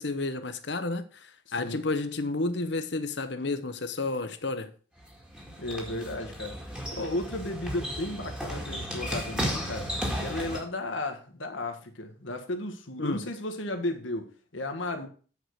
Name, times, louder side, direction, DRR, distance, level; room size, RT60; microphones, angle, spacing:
voice 1, 0.0-4.7 13.0-13.2, left 3 dB, 60° left, 1.0 m, -31 dB
voice 2, 1.5-1.8 5.6-6.6 6.9-15.1, left 1 dB, 75° left, 1.5 m, -34 dB
sound 1, 5.0-10.6, equal, 5° right, 1.8 m, -34 dB
9.1 x 4.9 x 6.4 m
head